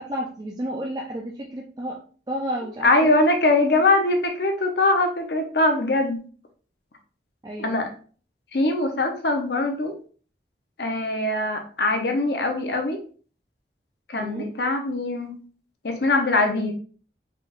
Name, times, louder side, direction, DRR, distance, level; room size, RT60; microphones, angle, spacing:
voice 1, 0.0-2.0 2.3-3.2 7.4-7.8 14.2-14.5, equal, 20° right, -1 dB, 0.4 m, -31 dB
voice 2, 2.8-6.2 7.6-7.9 8.5-9.9 10.8-13.0 14.1-15.4 15.8-16.7, left 2 dB, 65° left, 4 dB, 0.7 m, -22 dB
4.8 x 3.4 x 2.5 m, 0.42 s
head